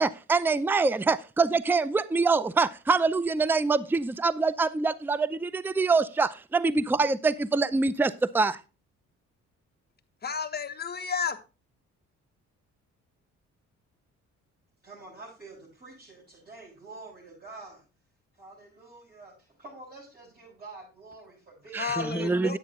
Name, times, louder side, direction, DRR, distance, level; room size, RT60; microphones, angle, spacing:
voice 1, 0.0-8.6 21.7-22.6, right 4 dB, 5° right, 0.4 m, -25 dB
voice 2, 10.2-11.4 21.8-22.6, left 6 dB, 30° left, 1.2 m, -31 dB
voice 3, 14.8-17.8 18.3-22.6, right 3 dB, 30° right, 6.4 m, -48 dB
9.8 x 8.4 x 3.5 m
cardioid pair, 90°, 30 cm